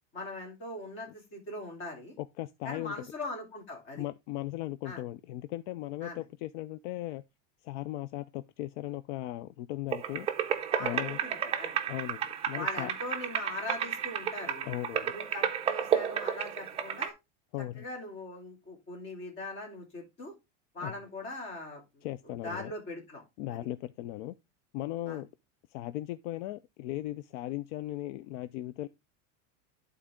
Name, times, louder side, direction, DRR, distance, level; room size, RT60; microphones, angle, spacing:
voice 1, 0.1-2.2 2.6-4.0 4.8-5.0 6.0-6.2 10.7-11.7 12.5-14.7 15.1-17.1 17.8-20.3 20.7-23.2 23.5-23.6 25.1-25.2, left 2 dB, 35° left, 2.8 m, -41 dB
voice 2, 2.2-3.0 4.0-7.2 7.6-10.3 10.8-11.2 11.9-12.9 14.6-15.1 17.5-17.8 20.8-20.9 22.0-22.7 23.4-24.3 24.7-25.3 25.7-28.9, left 15 dB, 70° left, 0.5 m, -37 dB
sound 1, 9.9-17.1, right 8 dB, 15° right, 0.5 m, -32 dB
11.0 x 4.0 x 3.5 m
supercardioid pair, 165°, 36 cm